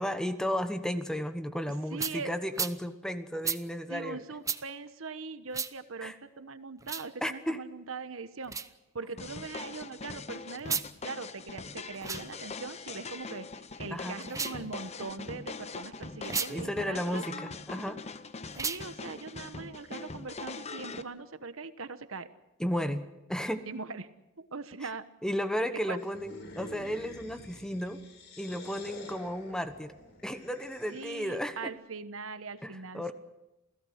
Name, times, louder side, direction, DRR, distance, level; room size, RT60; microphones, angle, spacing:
voice 1, 0.0-4.2 6.0-6.1 7.2-7.6 13.9-14.1 16.5-18.0 22.6-23.7 25.2-28.0 28.4-29.9 30.2-31.7 32.6-33.1, equal, 5° left, 8 dB, 1.2 m, -34 dB
voice 2, 1.9-2.3 3.9-8.6 8.9-10.8 11.0-13.5 13.8-17.2 18.6-22.3 23.7-24.1 24.4-25.1 25.7-26.0 30.9-33.1, right 4 dB, 70° right, 11 dB, 1.2 m, -41 dB
sound 1, 2.0-2.2 2.5-2.8 3.4-3.6 4.4-4.6 5.5-5.7 6.8-7.1 8.4-8.7 10.6-10.9 11.9-12.2 14.2-14.6 16.2-16.5 18.5-18.8, right 5 dB, 15° right, 0.8 m, -33 dB
sound 2, 9.2-21.0, left 4 dB, 30° left, 0.9 m, -42 dB
sound 3, 26.0-31.5, left 1 dB, 55° left, 5.2 m, -48 dB
28.5 x 17.0 x 6.6 m, 0.98 s
head